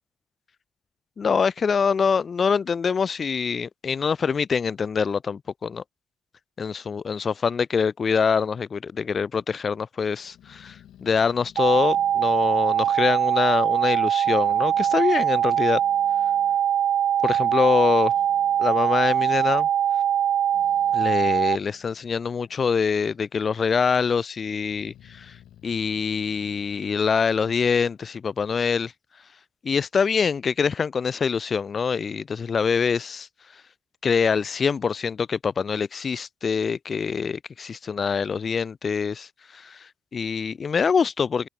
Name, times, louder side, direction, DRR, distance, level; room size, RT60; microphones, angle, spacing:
voice 1, 1.2-5.8 6.6-15.8 17.2-18.1 18.6-19.7 20.9-25.3 25.6-28.9 29.6-33.3 34.0-41.5, left 6 dB, 40° left, 0.7 m, -24 dB
Growling, 10.2-13.9 14.2-16.6 17.1-23.0 23.3-24.0 24.5-28.2, left 11 dB, 75° left, 3.4 m, -54 dB
sound 1, 11.6-21.6, right 10 dB, 65° right, 0.4 m, -22 dB
cardioid pair, 90°, 0 cm